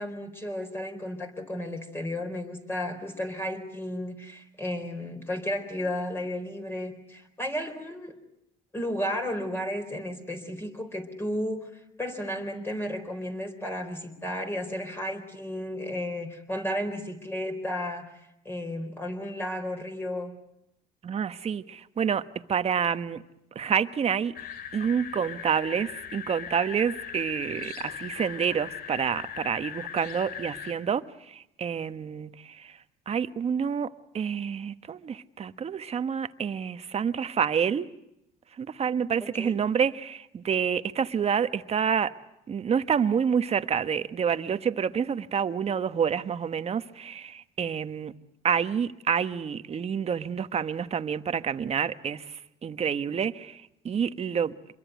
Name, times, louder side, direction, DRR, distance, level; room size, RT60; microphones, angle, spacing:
voice 1, 0.0-8.2 8.7-11.7 12.0-18.1 18.4-20.3 39.2-39.6, left 1 dB, 15° left, 4.2 m, -33 dB
voice 2, 21.0-22.2 22.5-23.2 23.5-24.3 24.7-32.7 33.1-37.9 38.6-42.1 42.5-48.1 48.4-54.7, right 7 dB, 40° right, 1.2 m, -28 dB
sound 1, 24.3-30.7, left 9 dB, 65° left, 3.9 m, -39 dB
26.0 x 22.5 x 9.3 m
cardioid pair, 110°, 17 cm